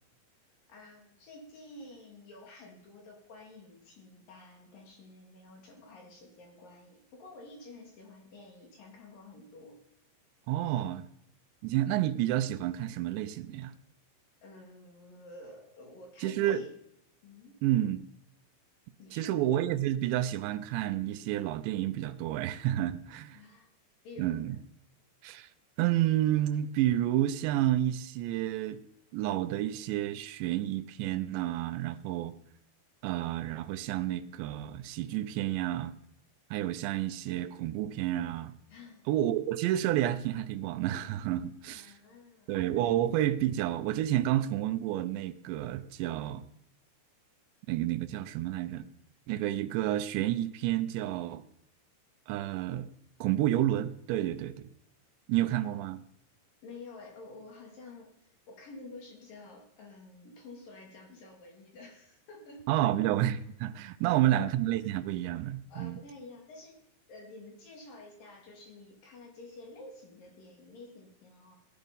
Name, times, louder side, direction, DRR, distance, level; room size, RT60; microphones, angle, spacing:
voice 1, 0.7-9.8 14.4-16.8 17.2-17.6 19.0-19.4 23.3-23.7 24.0-24.6 38.7-39.1 41.7-42.7 55.6-55.8 56.6-62.6 64.0-64.4 64.8-64.9 65.7-66.8 67.1-71.6, left 2 dB, 55° left, 4.1 m, -50 dB
voice 2, 10.5-11.0 11.6-13.7 16.2-16.6 17.6-18.1 19.1-23.4 24.2-24.6 25.2-25.5 25.8-28.8 29.1-32.3 33.0-35.9 36.5-38.5 39.1-41.9 42.5-46.4 47.7-48.9 49.3-51.4 52.3-52.9 53.2-54.7 55.3-56.0 62.7-66.0, right 13 dB, 85° right, 3.0 m, -30 dB
16.5 x 10.5 x 5.3 m
omnidirectional pair, 5.1 m